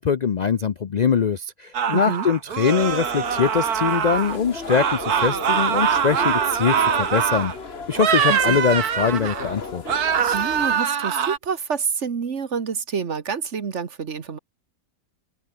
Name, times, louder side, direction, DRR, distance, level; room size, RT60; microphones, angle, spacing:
voice 1, 0.0-7.5 7.9-9.8, left 6 dB, 70° left, 0.4 m, -22 dB
sound 1, 1.7-4.4 4.7-7.6 7.9-9.5 9.9-11.4, right 8 dB, 80° right, 1.9 m, -23 dB
voice 2, 1.9-2.3 8.3-8.6 10.2-14.4, right 6 dB, 50° right, 1.6 m, -28 dB
sound 2, 2.8-10.8, left 4 dB, 40° left, 2.1 m, -36 dB
open air
omnidirectional pair, 1.6 m